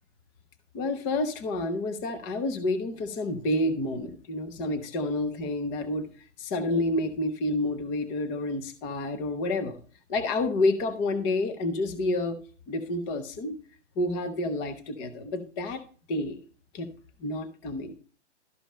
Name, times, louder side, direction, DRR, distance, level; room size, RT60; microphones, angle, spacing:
voice 1, 0.7-6.1 6.4-9.8 10.1-12.4 12.7-13.6 14.0-15.8 16.1-16.4 16.7-16.9 17.2-17.9, left 2 dB, 10° left, 9 dB, 0.4 m, -29 dB
12.5 x 5.1 x 4.2 m, 0.40 s
hypercardioid pair, 145°, 36 cm